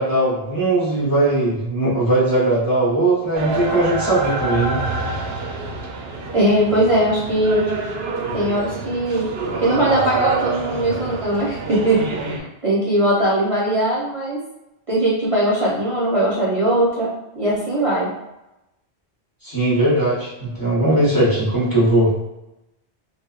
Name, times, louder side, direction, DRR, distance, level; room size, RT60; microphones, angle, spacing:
voice 1, 0.0-4.8 19.4-22.1, right 1 dB, 20° left, -7 dB, 0.9 m, -19 dB
sound 1, 3.3-12.4, right 3 dB, 70° right, 0.8 m, -26 dB
voice 2, 6.3-7.6 8.3-9.3 9.6-14.4 14.9-18.1, right 1 dB, 35° right, -7 dB, 0.8 m, -20 dB
3.1 x 3.0 x 2.4 m, 0.92 s
omnidirectional pair, 1.1 m